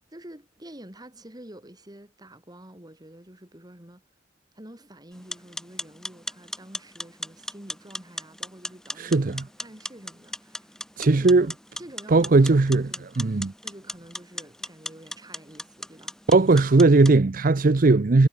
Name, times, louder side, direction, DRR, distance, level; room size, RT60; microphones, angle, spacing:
voice 1, 0.1-4.0 4.5-9.3 9.6-13.1 13.6-16.1, right 1 dB, 25° right, 3.3 m, -47 dB
sound 1, 5.1-17.2, left 1 dB, 5° left, 3.1 m, -38 dB
voice 2, 9.0-9.4 11.0-11.5 12.1-12.8 13.2-13.5 16.3-18.3, right 3 dB, 50° right, 0.6 m, -18 dB
head